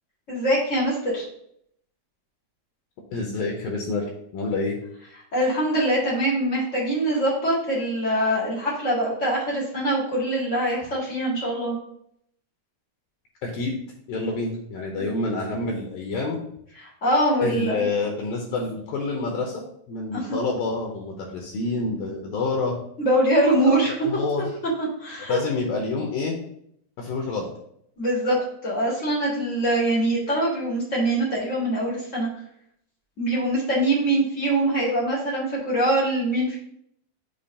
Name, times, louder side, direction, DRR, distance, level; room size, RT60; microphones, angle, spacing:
voice 1, 0.3-1.2 5.3-11.7 14.9-15.2 16.8-17.9 20.1-20.4 23.0-23.9 24.8-25.4 28.0-28.4 28.6-32.3 33.2-36.6, right 1 dB, 50° left, -6 dB, 0.8 m, -23 dB
voice 2, 3.1-4.1 4.3-4.8 13.4-13.8 14.1-16.4 17.4-19.6 19.9-22.8 23.6-23.8 24.0-24.5 25.3-26.4 27.0-27.5, left 3 dB, 75° left, 1 dB, 2.3 m, -27 dB
7.0 x 3.1 x 5.4 m, 0.71 s
omnidirectional pair, 4.6 m